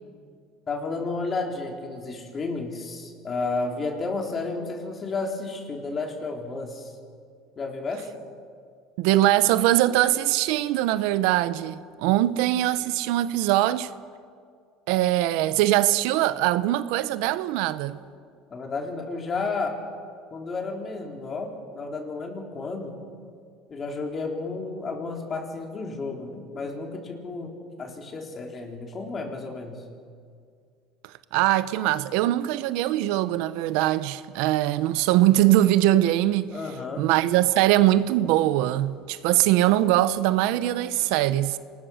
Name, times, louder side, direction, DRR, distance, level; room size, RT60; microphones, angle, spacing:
voice 1, 0.7-6.9 7.6-8.1 18.5-19.8 20.3-23.0 23.7-27.5 27.8-29.8 36.5-37.0, left 3 dB, 30° left, 4.0 m, -32 dB
voice 2, 9.0-13.9 14.9-18.0 31.3-36.5 37.0-41.6, right 14 dB, 75° right, 0.8 m, -22 dB
27.0 x 20.0 x 6.5 m
supercardioid pair, 120°, 0 cm